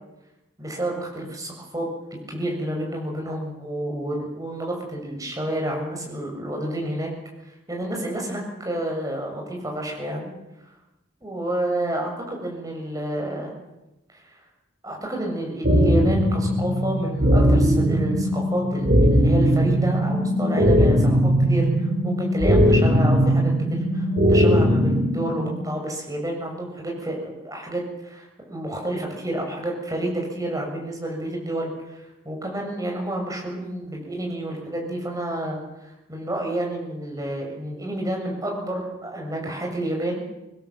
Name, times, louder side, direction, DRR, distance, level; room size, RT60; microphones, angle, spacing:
voice 1, 0.6-1.9 2.3-7.1 7.5-10.3 11.2-13.5 14.2-14.3 14.8-40.2, right 1 dB, 20° right, 0 dB, 7.1 m, -30 dB
sound 1, 15.6-25.6, equal, 45° right, 3.0 m, -19 dB
26.0 x 20.0 x 7.9 m, 0.96 s
head